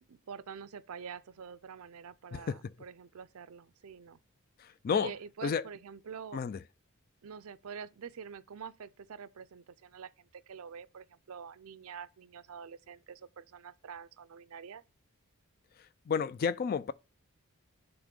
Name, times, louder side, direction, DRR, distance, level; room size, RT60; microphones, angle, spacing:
voice 1, 0.1-4.2 4.9-6.4 7.2-14.8, right 6 dB, 75° right, 0.5 m, -46 dB
voice 2, 2.3-2.7 4.6-5.1 5.4-5.6 6.3-6.6 16.1-16.9, left 6 dB, 45° left, 0.3 m, -31 dB
7.1 x 3.0 x 5.1 m
head